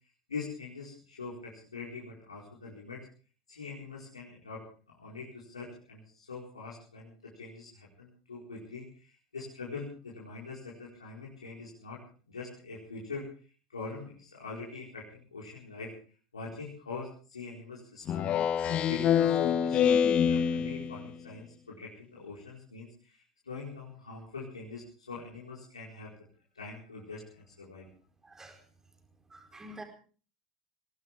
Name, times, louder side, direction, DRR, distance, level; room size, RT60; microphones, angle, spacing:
voice 1, 0.3-3.0 3.5-4.6 5.0-12.0 12.3-13.3 13.7-15.9 16.3-18.4 18.7-19.8 20.2-26.1 26.5-27.9, left 4 dB, 75° left, -4 dB, 4.7 m, -43 dB
Speech synthesizer, 18.1-21.1, left 8 dB, 35° left, 1.2 m, -26 dB
voice 2, 28.2-28.7 29.3-29.8, right 1 dB, 15° right, 4 dB, 4.5 m, -48 dB
21.5 x 18.0 x 3.6 m, 0.39 s
figure-of-eight pair, 75°, 3 cm